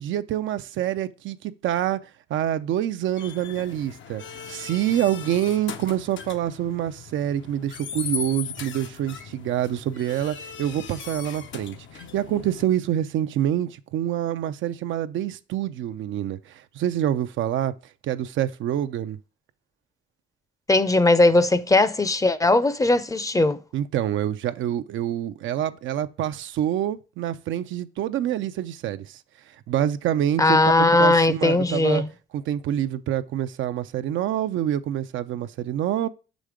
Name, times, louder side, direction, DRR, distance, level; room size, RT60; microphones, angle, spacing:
voice 1, 0.0-2.0 2.3-4.2 4.5-17.7 18.0-19.2 23.7-29.2 29.7-32.0 32.3-36.1, right 11 dB, 75° right, 0.5 m, -26 dB
sound 1, 3.2-12.6, left 7 dB, 70° left, 0.8 m, -38 dB
voice 2, 20.7-23.6 30.4-32.1, left 2 dB, 15° left, 0.6 m, -19 dB
5.7 x 5.1 x 5.0 m
cardioid pair, 90°, 20 cm